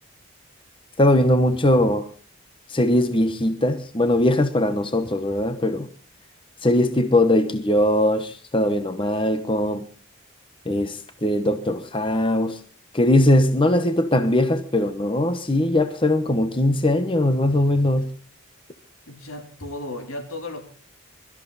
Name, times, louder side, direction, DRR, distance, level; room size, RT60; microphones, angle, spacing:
voice 1, 1.0-2.0 2.7-5.9 6.6-9.9 10.7-12.6 12.9-18.1, left 1 dB, 25° left, 1.0 m, -20 dB
voice 2, 19.1-20.6, left 2 dB, 75° left, 3.6 m, -34 dB
22.5 x 13.5 x 4.1 m
head